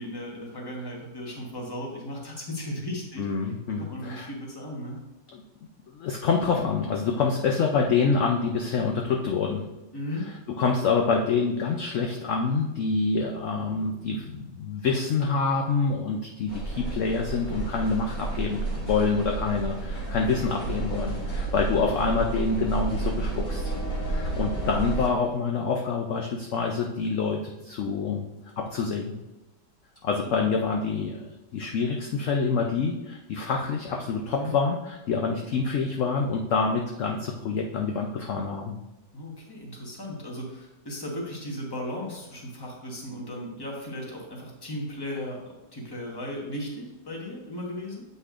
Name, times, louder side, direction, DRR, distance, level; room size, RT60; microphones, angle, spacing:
voice 1, 0.0-3.3 3.7-5.0 9.9-10.3 25.1-25.3 30.2-30.3 34.2-34.5 39.1-45.4 45.7-48.0, left 1 dB, 15° left, -2 dB, 1.1 m, -36 dB
voice 2, 3.2-4.3 5.3-5.4 5.9-9.6 10.5-23.7 24.1-28.3 28.6-29.1 30.0-38.7, left 4 dB, 70° left, 1 dB, 0.7 m, -26 dB
sound 1, 16.5-25.1, right 3 dB, 90° left, 2.4 m, -31 dB
8.2 x 5.4 x 2.5 m, 1.0 s
omnidirectional pair, 1.9 m